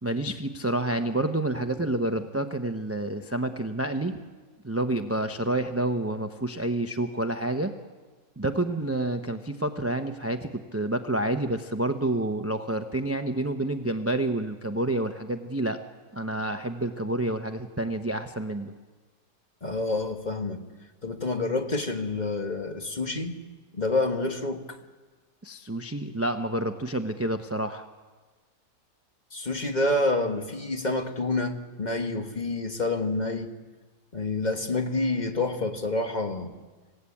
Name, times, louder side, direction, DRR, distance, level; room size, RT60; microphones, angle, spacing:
voice 1, 0.0-4.2 4.6-7.7 8.4-15.8 16.1-18.7 25.4-27.9, right 1 dB, 15° right, 6 dB, 0.5 m, -28 dB
voice 2, 19.6-20.6 21.0-23.4 23.7-24.8 29.3-33.5 34.1-36.5, left 2 dB, 25° left, 5 dB, 1.5 m, -28 dB
27.0 x 17.0 x 8.6 m, 1.4 s
omnidirectional pair, 1.9 m